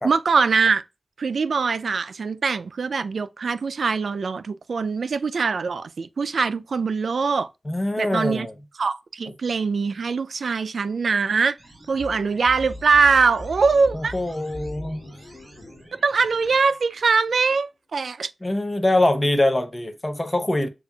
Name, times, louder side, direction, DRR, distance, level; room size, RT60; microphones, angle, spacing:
voice 1, 0.0-0.8 1.2-7.5 8.0-8.5 8.8-11.6 11.9-14.1 16.0-18.3, right 5 dB, 90° right, 0.3 m, -22 dB
voice 2, 7.7-8.5 13.9-15.2 18.4-20.7, left 1 dB, 20° left, 0.7 m, -23 dB
sound 1, 11.6-16.6, right 1 dB, 35° right, 2.5 m, -50 dB
sound 2, 12.0-17.6, left 1 dB, 70° left, 1.4 m, -41 dB
7.0 x 2.5 x 2.3 m
wide cardioid pair, 105°, 0 cm